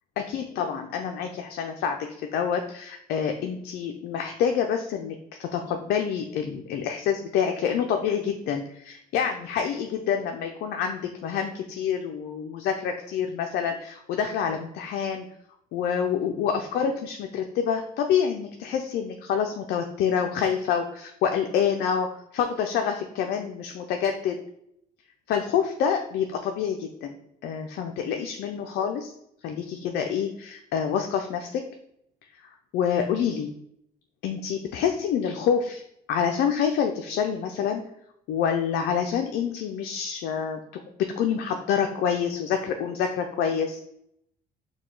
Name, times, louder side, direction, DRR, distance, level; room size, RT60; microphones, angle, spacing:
voice 1, 0.2-2.0 2.3-15.3 15.7-22.1 22.3-24.4 25.3-27.1 27.4-29.1 29.4-31.6 32.4-33.5 34.2-35.8 36.1-37.8 38.3-40.8 41.2-43.8, left 7 dB, 70° left, 4 dB, 0.4 m, -27 dB
4.7 x 2.2 x 3.8 m, 0.73 s
cardioid pair, 110°, 17 cm